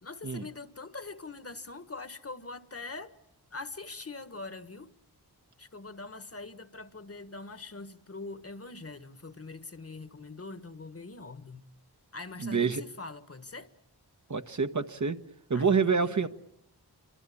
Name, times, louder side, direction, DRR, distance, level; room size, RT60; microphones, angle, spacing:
voice 1, 0.0-3.1 3.5-4.9 5.6-11.6 12.1-13.7 15.5-16.3, left 3 dB, 35° left, 1.4 m, -43 dB
voice 2, 12.4-12.8 14.3-15.2 15.5-16.3, right 5 dB, 45° right, 1.3 m, -27 dB
27.5 x 24.5 x 8.5 m
wide cardioid pair, 95°, 39 cm